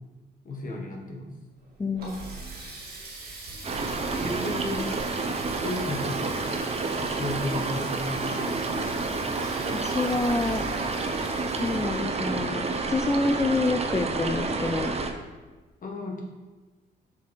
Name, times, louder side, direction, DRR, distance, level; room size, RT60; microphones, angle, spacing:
voice 1, 0.4-1.3 2.6-2.7 4.2-4.9 5.6-6.3 7.2-8.8 15.8-16.2, left 1 dB, 45° left, 0 dB, 1.7 m, -33 dB
Water tap faucet, 1.5-13.2, right 2 dB, 50° right, 2.2 m, -44 dB
voice 2, 1.8-2.2 9.7-10.6 11.6-14.9, left 3 dB, 15° left, 6 dB, 0.4 m, -27 dB
sound 1, 2.0-11.4, right 3 dB, 85° right, 1.3 m, -46 dB
sound 2, 3.6-15.1, right 3 dB, 30° right, 0.7 m, -29 dB
6.8 x 4.9 x 4.6 m, 1.3 s
cardioid pair, 90°, 20 cm